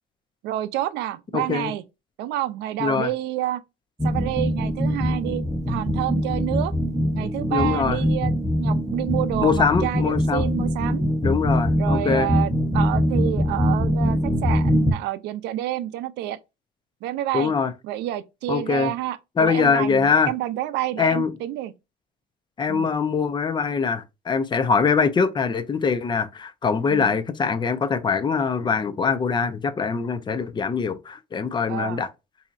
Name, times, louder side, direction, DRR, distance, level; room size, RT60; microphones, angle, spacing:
voice 1, 0.4-1.8 2.2-3.6 4.0-6.7 7.1-8.3 8.6-11.1 11.8-16.4 17.0-17.5 17.8-21.7 22.7-22.9 26.9-27.1 31.7-32.0, right 13 dB, 85° right, 0.4 m, -29 dB
voice 2, 1.3-1.7 2.8-3.1 7.5-8.0 9.4-10.6 11.2-12.3 17.3-17.7 18.5-18.9 19.4-20.3 21.0-21.3 22.6-32.1, left 5 dB, 25° left, 0.5 m, -23 dB
sound 1, 4.0-14.9, equal, ahead, 0.9 m, -23 dB
4.2 x 2.7 x 2.4 m
cardioid pair, 110°, 17 cm